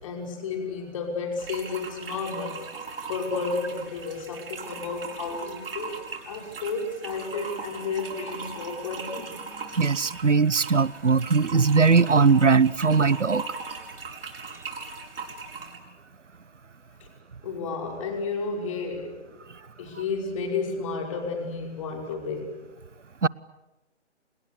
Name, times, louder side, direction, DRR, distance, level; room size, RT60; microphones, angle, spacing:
voice 1, 0.0-2.6 3.1-9.4 17.4-19.2 19.8-22.6, left 4 dB, 25° left, 5.7 m, -32 dB
sound 1, 1.4-15.8, right 4 dB, 50° right, 5.4 m, -39 dB
voice 2, 9.8-13.4 23.2-23.3, right 5 dB, 80° right, 1.1 m, -20 dB
29.5 x 28.0 x 6.8 m
figure-of-eight pair, 150°, 36 cm